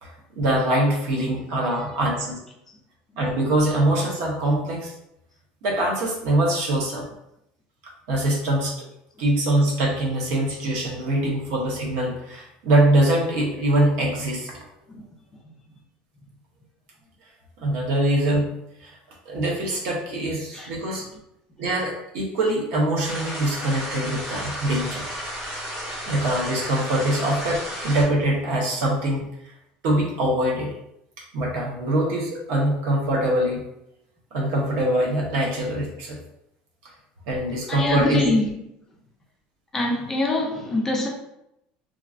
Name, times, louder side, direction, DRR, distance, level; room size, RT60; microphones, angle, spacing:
voice 1, 0.0-2.4 3.2-4.9 5.6-7.0 8.1-8.7 9.2-14.5 17.6-18.5 18.8-18.9 19.2-21.0 21.6-25.1 26.1-29.3 29.8-30.7 31.3-33.6 34.3-36.2 37.3-38.2, right 1 dB, 60° right, -1 dB, 0.8 m, -23 dB
voice 2, 1.7-2.3 14.9-15.0 20.5-21.0 37.7-38.5 39.7-41.1, left 2 dB, 10° left, 0 dB, 0.3 m, -25 dB
sound 1, 23.0-28.0, equal, 25° right, 1.0 m, -33 dB
3.0 x 2.4 x 2.5 m, 0.81 s
cardioid pair, 180°, 3 cm